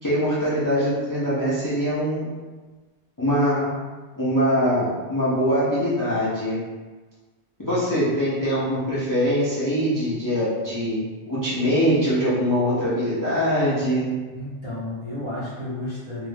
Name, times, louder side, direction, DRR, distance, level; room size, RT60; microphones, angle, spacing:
voice 1, 0.0-2.2 3.2-3.7 4.2-6.6 7.6-11.0 11.3-14.1, equal, 20° left, -10 dB, 0.6 m, -23 dB
voice 2, 14.3-16.3, left 1 dB, 25° right, -9 dB, 0.9 m, -32 dB
2.7 x 2.5 x 3.5 m, 1.3 s
omnidirectional pair, 1.2 m